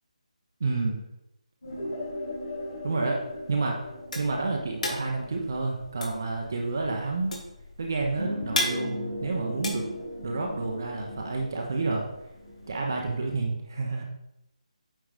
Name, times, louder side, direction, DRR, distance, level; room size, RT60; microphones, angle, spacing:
voice 1, 0.6-1.0 2.8-3.2 3.5-3.8 4.1-7.3 7.8-9.9 10.2-12.0 12.7-14.0, right 3 dB, 30° right, 1 dB, 0.8 m, -29 dB
sound 1, 1.6-13.4, left 1 dB, 45° left, 2.7 m, -39 dB
sound 2, 4.1-10.6, left 1 dB, 90° left, 2.3 m, -34 dB
8.9 x 3.8 x 5.0 m, 0.83 s
hypercardioid pair, 180°, 4 cm